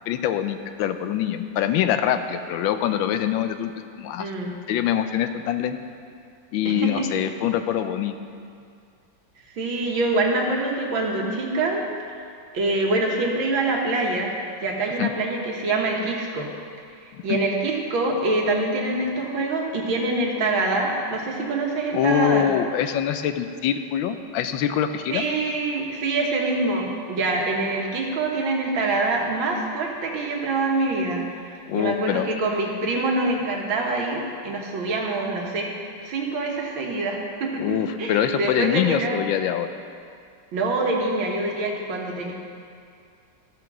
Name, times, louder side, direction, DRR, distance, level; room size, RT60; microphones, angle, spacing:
voice 1, 0.1-3.7 4.0-4.3 4.7-5.8 6.5-8.2 15.0-15.1 17.1-17.4 21.9-25.2 31.7-32.3 37.6-39.7, left 10 dB, 85° left, 9 dB, 1.3 m, -24 dB
voice 2, 4.2-4.6 6.7-7.1 9.5-11.8 12.5-14.3 14.6-16.5 17.2-22.5 25.1-31.2 31.7-35.7 36.0-39.2 40.5-42.3, right 2 dB, 85° right, 0 dB, 2.0 m, -25 dB
14.0 x 5.1 x 6.0 m, 2.3 s
omnidirectional pair, 2.1 m